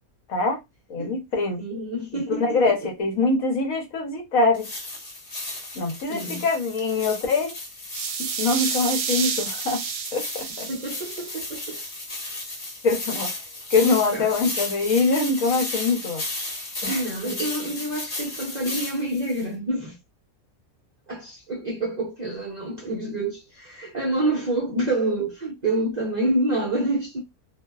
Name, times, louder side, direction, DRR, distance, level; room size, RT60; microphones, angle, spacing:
voice 1, 0.9-1.6 2.1-4.7 5.7-7.6 8.2-9.8 10.1-10.7 12.8-13.3 13.7-16.2 16.8-17.3, left 3 dB, 70° left, 1.1 m, -24 dB
voice 2, 1.6-2.9 6.1-6.5 10.7-11.8 13.8-14.4 16.9-20.0 21.1-27.2, right 1 dB, 50° right, 0.5 m, -27 dB
sound 1, 4.5-19.4, left 2 dB, 40° left, 1.1 m, -34 dB
sound 2, 7.9-12.0, right 6 dB, 75° right, 1.0 m, -30 dB
2.6 x 2.1 x 2.2 m
omnidirectional pair, 1.5 m